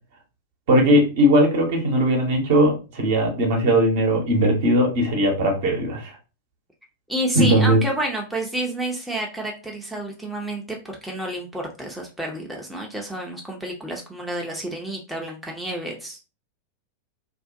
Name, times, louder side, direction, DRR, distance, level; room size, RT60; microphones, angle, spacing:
voice 1, 0.7-6.1 7.4-7.8, equal, 55° right, 1 dB, 0.8 m, -19 dB
voice 2, 7.1-16.2, right 1 dB, 5° right, -1 dB, 0.5 m, -30 dB
2.5 x 2.1 x 2.5 m, 0.32 s
figure-of-eight pair, 90°, 0 cm